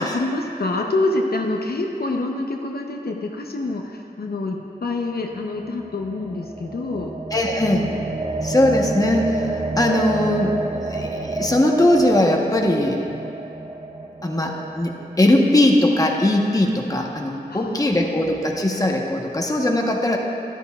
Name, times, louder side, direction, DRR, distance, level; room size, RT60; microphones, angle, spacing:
voice 1, 0.0-7.1 17.5-18.0, left 2 dB, 65° left, 1 dB, 0.7 m, -26 dB
sound 1, 5.4-15.6, right 2 dB, 35° right, 0.6 m, -29 dB
voice 2, 7.3-7.9 8.4-13.0 14.2-20.2, left 1 dB, 20° left, 0 dB, 1.0 m, -20 dB
13.0 x 12.0 x 2.4 m, 2.6 s
wide cardioid pair, 80°, 17 cm